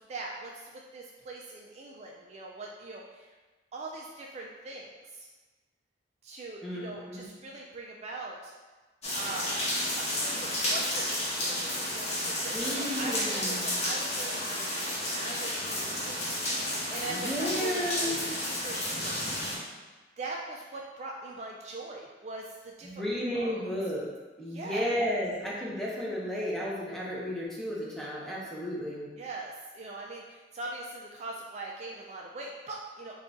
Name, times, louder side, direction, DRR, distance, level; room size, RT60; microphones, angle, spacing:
voice 1, 0.1-3.3 3.7-5.3 6.2-8.5 9.2-9.6 9.9-19.2 20.2-23.0 23.3-23.6 24.4-24.9 29.2-33.1, right 2 dB, 40° right, -1 dB, 0.3 m, -41 dB
voice 2, 6.6-7.3 12.5-13.7 17.1-18.2 22.8-24.0 24.4-29.1, equal, ahead, -6 dB, 0.7 m, -33 dB
sound 1, 9.0-19.6, left 1 dB, 40° left, 1.0 m, -32 dB
3.7 x 2.3 x 3.8 m, 1.3 s
head